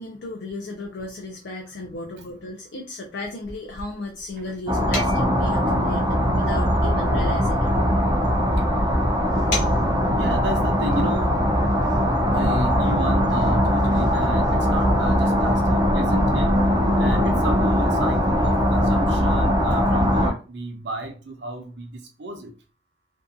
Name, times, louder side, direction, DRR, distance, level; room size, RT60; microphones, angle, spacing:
voice 1, 0.0-7.7, left 2 dB, 65° left, 0.5 m, -35 dB
Foosball sounds, 3.4-10.2, left 2 dB, 45° left, 1.2 m, -36 dB
sound 1, 4.7-20.3, equal, 20° right, 0.4 m, -20 dB
voice 2, 10.2-11.4 12.3-16.6 17.0-22.5, right 1 dB, 65° right, 0.6 m, -32 dB
2.6 x 2.3 x 2.4 m
head